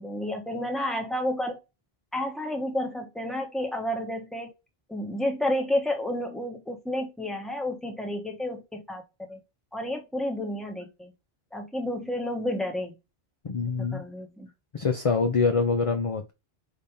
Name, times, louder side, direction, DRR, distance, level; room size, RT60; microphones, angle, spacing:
voice 1, 0.0-1.6 2.1-4.5 4.9-9.0 9.3-9.4 9.7-11.1 11.5-12.9 13.8-14.5, left 1 dB, ahead, 1.0 m, -31 dB
voice 2, 13.4-14.1 14.7-16.3, left 4 dB, 40° left, 0.6 m, -25 dB
4.2 x 3.5 x 3.4 m
omnidirectional pair, 1.0 m